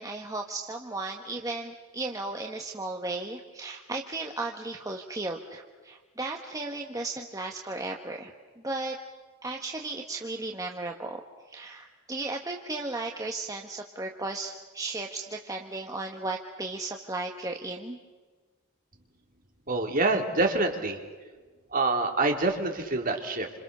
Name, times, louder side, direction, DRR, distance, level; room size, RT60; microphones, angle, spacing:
voice 1, 0.0-9.0 9.4-11.2 11.5-18.0, right 2 dB, 15° right, 2 dB, 1.4 m, -35 dB
voice 2, 19.7-21.0 21.7-23.5, right 2 dB, 40° right, 3 dB, 3.4 m, -26 dB
28.5 x 27.0 x 6.9 m, 1.4 s
head